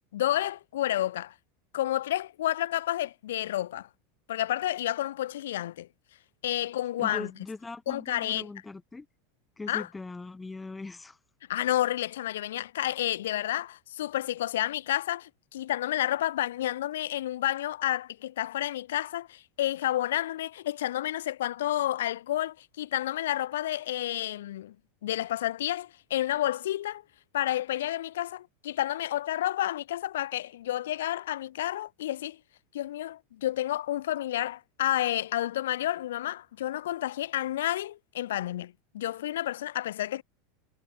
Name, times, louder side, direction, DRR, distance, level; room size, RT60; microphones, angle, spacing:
voice 1, 0.1-1.3 1.7-3.9 4.3-5.9 6.4-7.3 7.9-8.5 9.7-9.9 11.5-24.8 25.0-27.0 27.3-32.4 32.7-40.2, left 13 dB, 75° left, 0.3 m, -30 dB
voice 2, 7.0-9.1 9.6-11.2, left 3 dB, 15° left, 1.0 m, -40 dB
hypercardioid pair, 90°, 0 cm